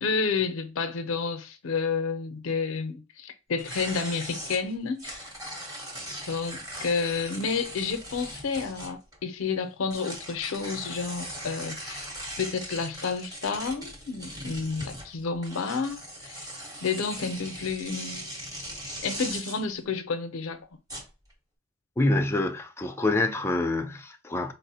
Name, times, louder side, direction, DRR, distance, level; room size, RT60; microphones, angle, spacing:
voice 1, 0.0-5.3 6.3-12.1 12.4-16.5 16.8-18.4 19.0-20.6, left 5 dB, 80° left, 0.5 m, -30 dB
sound 1, 3.6-9.2 9.9-19.6 20.9-21.3, equal, 20° right, 0.9 m, -39 dB
voice 2, 22.0-24.5, left 2 dB, 10° left, 0.4 m, -26 dB
4.2 x 2.0 x 2.7 m
head